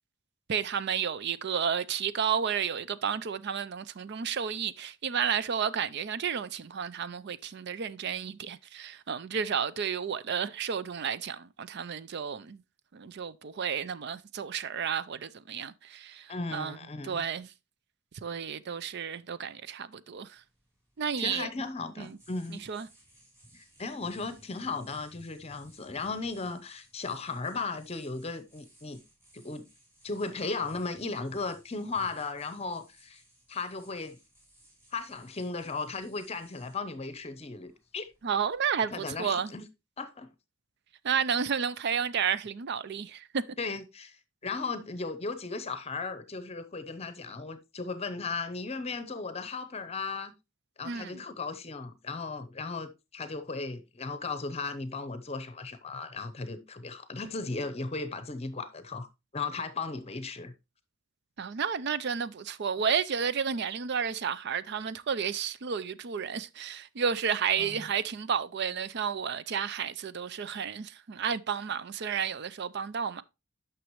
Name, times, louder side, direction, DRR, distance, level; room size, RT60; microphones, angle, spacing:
voice 1, 0.5-12.6 12.9-16.8 17.0-17.5 18.2-20.4 21.0-21.5 22.0-22.2 22.7-22.9 38.2-39.5 41.0-43.4 50.8-51.2 61.4-73.2, right 7 dB, 55° right, 0.5 m, -32 dB
voice 2, 16.3-17.2 21.2-22.6 23.5-29.0 29.3-29.6 30.0-33.2 33.5-34.2 34.9-38.1 38.9-39.7 40.0-40.3 43.6-44.2 44.4-50.3 50.8-59.1 59.3-60.5 67.6-67.9, left 4 dB, 30° left, 0.7 m, -36 dB
sound 1, 20.4-38.8, right 1 dB, 15° right, 4.6 m, -59 dB
9.3 x 6.1 x 3.0 m
head